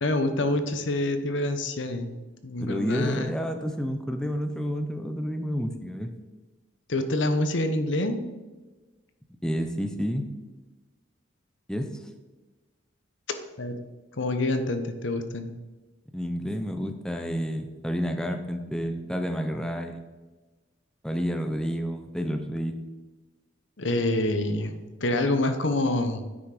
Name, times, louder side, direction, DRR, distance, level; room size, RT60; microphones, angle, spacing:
voice 1, 0.0-2.1 2.4-3.3 6.9-8.2 13.3-13.8 14.2-15.5 23.8-24.7 25.0-26.2, left 2 dB, 70° left, 8 dB, 0.9 m, -26 dB
voice 2, 2.6-6.1 9.4-10.3 11.7-11.9 16.1-20.0 21.0-22.7, equal, 5° left, 5 dB, 0.6 m, -30 dB
9.5 x 6.3 x 4.9 m, 1.2 s
head